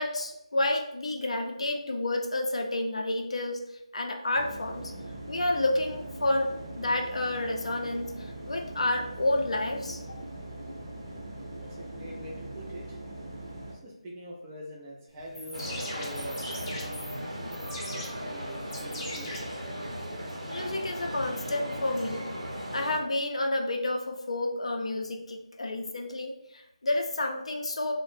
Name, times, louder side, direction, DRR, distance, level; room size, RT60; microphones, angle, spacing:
voice 1, 0.0-3.6 3.9-4.9 5.3-10.2 20.5-22.3 22.7-27.9, left 2 dB, 65° left, 3 dB, 0.4 m, -30 dB
sound 1, 4.3-13.8, right 1 dB, 35° right, 0.7 m, -41 dB
voice 2, 11.6-13.0 13.7-19.4, equal, 10° right, -4 dB, 0.3 m, -45 dB
sound 2, 15.2-20.2, left 1 dB, 25° left, 0.7 m, -42 dB
sound 3, 15.5-23.0, equal, 90° right, 0.7 m, -37 dB
2.5 x 2.0 x 3.2 m, 0.83 s
figure-of-eight pair, 165°, 4 cm